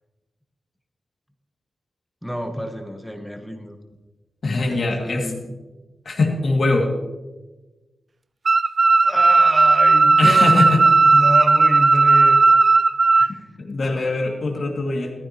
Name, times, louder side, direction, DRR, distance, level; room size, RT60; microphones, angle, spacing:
voice 1, 2.2-3.8 4.7-5.6 9.0-12.5 13.1-13.5, equal, ahead, 5 dB, 1.1 m, -29 dB
voice 2, 4.4-5.3 6.1-6.9 10.2-10.8 13.6-15.1, left 3 dB, 55° left, 1 dB, 2.3 m, -21 dB
sound 1, 8.4-13.3, right 3 dB, 45° right, 0.3 m, -15 dB
15.0 x 14.0 x 3.0 m, 1.2 s
wide cardioid pair, 115°, 0 cm